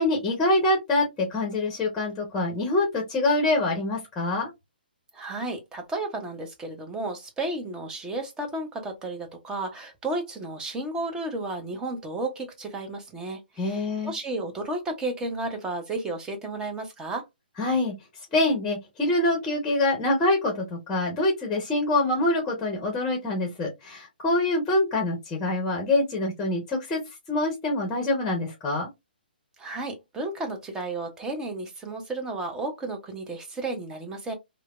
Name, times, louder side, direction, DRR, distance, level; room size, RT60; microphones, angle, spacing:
voice 1, 0.0-4.5 13.6-14.1 17.6-17.9 18.3-27.0 27.3-28.9, left 2 dB, 15° left, 0.9 m, -25 dB
voice 2, 5.1-17.2 29.6-34.3, right 2 dB, 10° right, 0.7 m, -33 dB
3.2 x 2.0 x 2.3 m
hypercardioid pair, 135°, 5 cm